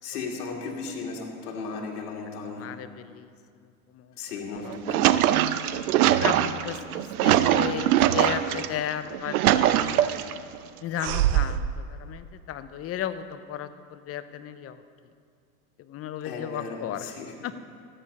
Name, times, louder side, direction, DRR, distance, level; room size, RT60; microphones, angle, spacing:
voice 1, 0.0-2.7 4.2-5.2 16.2-17.3, left 4 dB, 80° left, -1 dB, 2.4 m, -36 dB
voice 2, 2.6-3.3 3.9-4.2 4.6-4.7 5.1-5.4 6.2-10.0 10.8-14.8 15.8-17.1 17.4-17.5, left 10 dB, 30° left, 12 dB, 0.7 m, -34 dB
sound 1, 4.6-8.7 9.1-10.4 11.0-11.7, right 12 dB, 75° right, 0.7 m, -22 dB
13.5 x 9.8 x 5.4 m, 2.2 s
hypercardioid pair, 105°, 44 cm